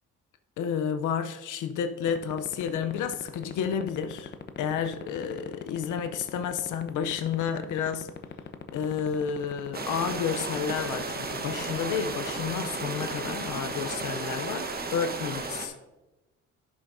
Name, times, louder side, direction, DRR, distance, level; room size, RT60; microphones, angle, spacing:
voice 1, 0.6-8.1 8.7-15.7, left 7 dB, 80° left, 0.7 m, -31 dB
sound 1, 2.1-14.4, left 7 dB, 35° left, 0.8 m, -37 dB
sound 2, 9.7-15.7, right 3 dB, 30° right, 1.2 m, -34 dB
12.0 x 7.1 x 2.6 m
cardioid pair, 90°, 30 cm